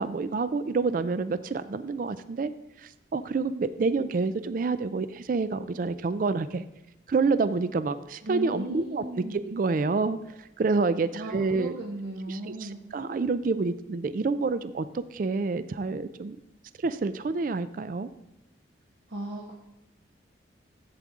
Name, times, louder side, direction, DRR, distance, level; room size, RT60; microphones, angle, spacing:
voice 1, 0.0-2.5 2.8-6.6 7.1-11.8 12.3-16.4 16.8-18.1, right 4 dB, 45° right, 13 dB, 0.3 m, -28 dB
voice 2, 8.2-9.4 11.1-12.8 19.1-19.5, right 1 dB, 65° right, -3 dB, 1.4 m, -36 dB
14.5 x 8.3 x 3.7 m, 0.91 s
head